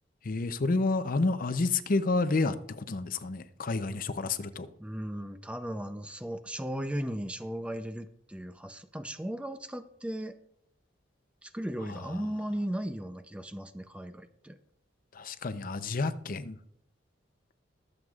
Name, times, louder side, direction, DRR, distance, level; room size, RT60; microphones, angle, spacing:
voice 1, 0.2-4.7 11.9-12.2 15.1-16.6, left 3 dB, 50° left, 12 dB, 0.6 m, -30 dB
voice 2, 4.8-10.4 11.4-14.6, equal, 5° right, 9 dB, 0.5 m, -36 dB
22.0 x 7.8 x 2.4 m, 0.72 s
head